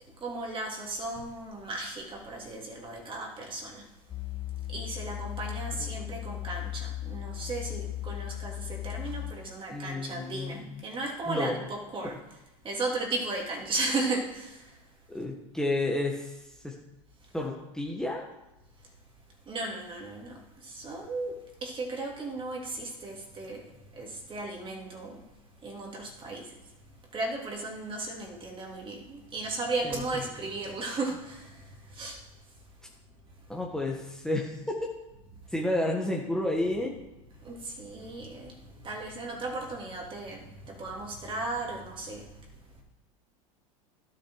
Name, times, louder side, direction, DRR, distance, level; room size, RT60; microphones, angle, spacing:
voice 1, 0.2-3.9 4.7-12.2 12.6-14.8 18.8-18.9 19.4-25.3 25.6-26.6 27.1-32.3 33.3-33.6 37.4-42.8, right 2 dB, 30° right, 0 dB, 3.1 m, -36 dB
sound 1, 4.1-9.3, left 14 dB, 25° left, 0.7 m, -37 dB
voice 2, 9.7-10.8 11.3-11.6 15.1-16.8 17.3-18.3 29.8-30.0 33.5-34.6 35.5-36.9, left 1 dB, 5° left, -2 dB, 1.6 m, -31 dB
12.0 x 7.2 x 4.8 m, 1.0 s
hypercardioid pair, 100°, 18 cm